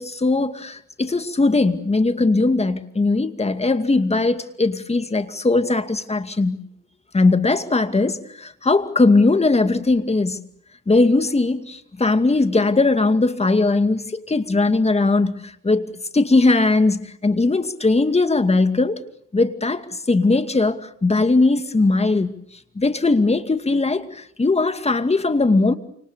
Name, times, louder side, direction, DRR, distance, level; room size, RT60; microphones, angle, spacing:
voice 1, 0.0-6.6 7.1-10.4 10.9-19.0 19.3-22.3 22.8-25.7, left 3 dB, 20° left, 2.4 m, -19 dB
29.0 x 27.0 x 7.0 m
cardioid pair, 90°, 30 cm